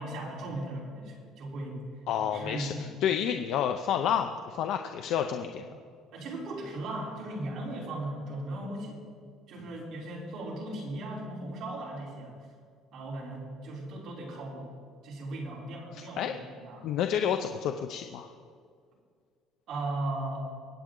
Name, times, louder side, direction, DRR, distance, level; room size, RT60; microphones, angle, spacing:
voice 1, 0.0-1.8 2.1-2.9 6.1-9.0 9.5-12.4 12.9-14.7 15.0-16.9 19.7-20.4, right 1 dB, 45° right, -4 dB, 3.9 m, -37 dB
voice 2, 2.1-5.8 15.9-16.3 16.8-18.3, left 9 dB, 60° left, 6 dB, 0.6 m, -30 dB
23.0 x 8.9 x 3.8 m, 2.1 s
cardioid pair, 160°, 0 cm